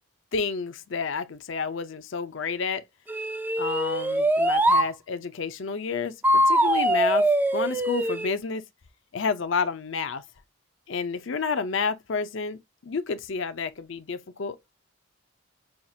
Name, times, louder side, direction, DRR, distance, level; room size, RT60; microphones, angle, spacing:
voice 1, 0.3-2.8 3.6-8.6 9.1-10.2 10.9-14.6, left 5 dB, 60° left, 0.5 m, -30 dB
sound 1, 3.1-4.9 6.2-8.3, right 1 dB, 10° right, 0.3 m, -22 dB
5.7 x 2.3 x 2.7 m
head